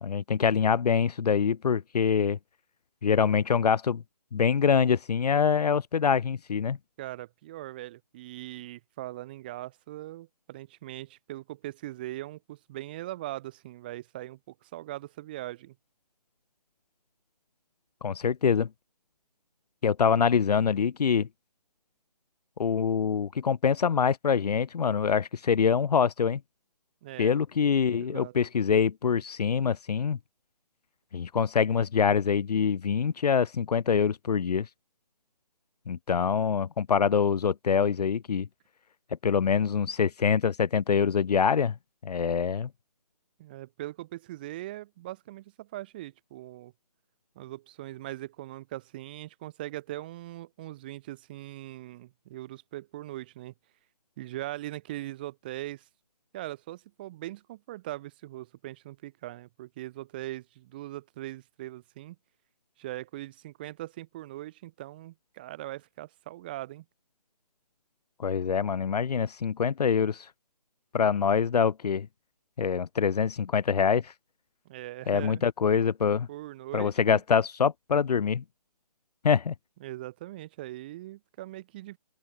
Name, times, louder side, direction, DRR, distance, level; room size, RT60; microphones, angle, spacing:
voice 1, 0.0-2.4 3.0-4.0 4.3-6.8 18.0-18.7 19.8-21.3 22.6-26.4 27.2-30.2 31.1-34.7 35.9-38.5 39.2-41.7 42.0-42.7 68.2-70.3 70.9-72.1 72.6-74.1 75.1-76.3 76.7-78.4 79.2-79.5, left 6 dB, 80° left, 0.5 m, -25 dB
voice 2, 7.0-15.7 27.0-27.3 28.1-28.3 43.4-46.7 47.3-53.5 54.2-55.9 56.3-62.2 62.8-66.8 74.6-75.4 76.3-77.2 79.8-82.0, right 16 dB, 15° right, 1.5 m, -40 dB
open air
hypercardioid pair, 175°, 20 cm